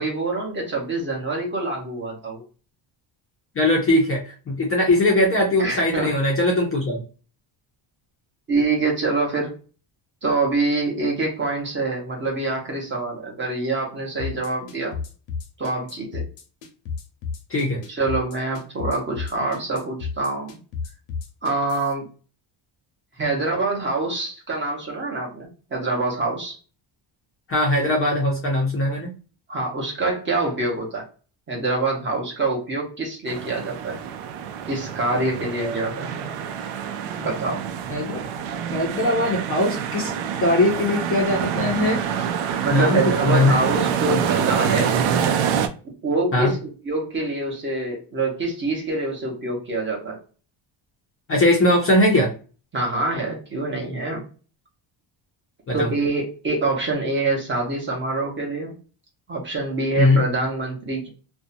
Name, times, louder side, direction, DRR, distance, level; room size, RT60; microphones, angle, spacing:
voice 1, 0.0-2.4 5.6-6.2 8.5-9.5 10.2-15.0 15.6-16.2 17.9-20.5 21.4-22.0 23.2-26.6 29.5-31.0 31.5-34.0 34.7-36.3 37.2-37.6 42.6-44.9 46.0-50.2 52.7-54.2 55.7-58.7 59.3-61.1, right 2 dB, 25° right, -1 dB, 0.8 m, -25 dB
voice 2, 3.6-7.0 17.5-17.8 27.5-29.1 37.9-38.2 38.7-40.1 40.4-42.0 42.7-43.6 46.3-46.5 51.3-52.3 55.7-55.9 60.0-60.2, left 1 dB, 30° left, -2 dB, 0.5 m, -20 dB
sound 1, 14.2-21.9, left 5 dB, 90° left, 0.9 m, -32 dB
sound 2, 33.3-45.7, right 8 dB, 90° right, 0.6 m, -26 dB
2.6 x 2.1 x 2.5 m, 0.36 s
cardioid pair, 170°, 49 cm